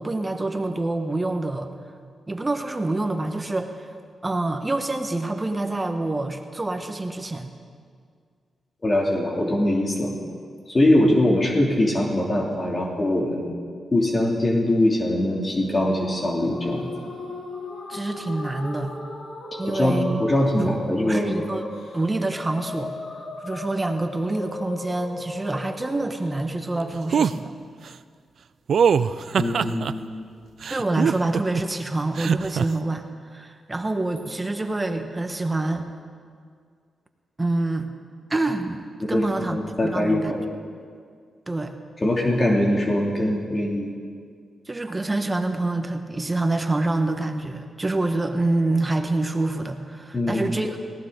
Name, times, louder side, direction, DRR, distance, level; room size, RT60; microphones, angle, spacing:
voice 1, 0.0-1.7 2.3-3.9 4.2-7.5 17.9-19.0 19.6-20.2 20.6-21.6 21.9-27.5 30.7-35.9 37.4-37.9 38.3-40.3 41.5-41.7 44.7-50.8, right 2 dB, 25° right, 6 dB, 1.5 m, -26 dB
voice 2, 8.8-10.1 10.7-13.5 13.9-16.9 19.6-21.4 29.4-30.3 39.1-39.2 39.5-40.4 42.0-43.9 50.1-50.4, left 1 dB, 35° left, -2 dB, 2.9 m, -22 dB
sound 1, 16.4-26.8, left 2 dB, 75° left, 3.1 m, -36 dB
sound 2, 27.1-27.3 28.7-29.9 30.6-31.6 32.2-32.7, right 7 dB, 70° right, 0.4 m, -21 dB
19.0 x 17.0 x 4.0 m, 2.1 s
cardioid pair, 60°, 0 cm